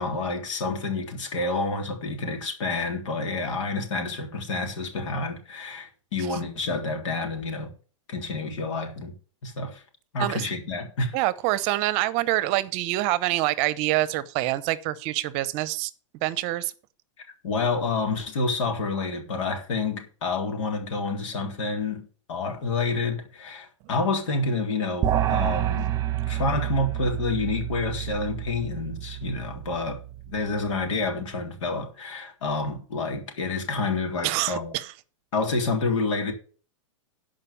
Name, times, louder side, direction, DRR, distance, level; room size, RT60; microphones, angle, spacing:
voice 1, 0.0-7.7 8.1-9.2 9.4-9.8 10.1-11.2 17.4-25.9 26.3-30.0 30.3-34.7 35.3-36.3, left 3 dB, 70° left, 3.5 m, -28 dB
voice 2, 11.1-15.9 16.2-16.7 34.2-34.9, right 16 dB, 40° right, 0.8 m, -26 dB
sound 1, 25.0-30.5, right 12 dB, 20° right, 1.4 m, -29 dB
12.0 x 5.2 x 7.1 m
hypercardioid pair, 125°, 16 cm